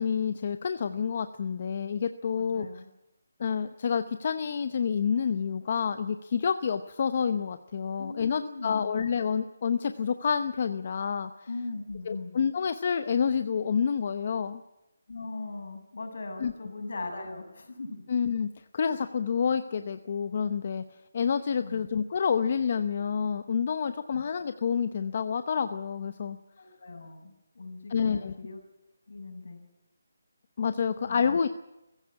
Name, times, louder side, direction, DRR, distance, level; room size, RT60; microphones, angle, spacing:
voice 1, 0.0-2.7 3.4-11.3 12.1-14.6 16.4-16.5 18.1-20.8 21.1-26.4 27.9-28.3 30.6-31.5, left 6 dB, 35° left, 10 dB, 0.8 m, -28 dB
voice 2, 2.4-2.9 8.0-8.9 11.5-12.4 15.1-18.0 21.6-21.9 24.1-24.2 26.6-28.6 29.1-29.6 31.1-31.4, left 3 dB, 60° left, 5 dB, 6.6 m, -39 dB
20.5 x 15.5 x 9.8 m, 0.96 s
hypercardioid pair, 175°, 0 cm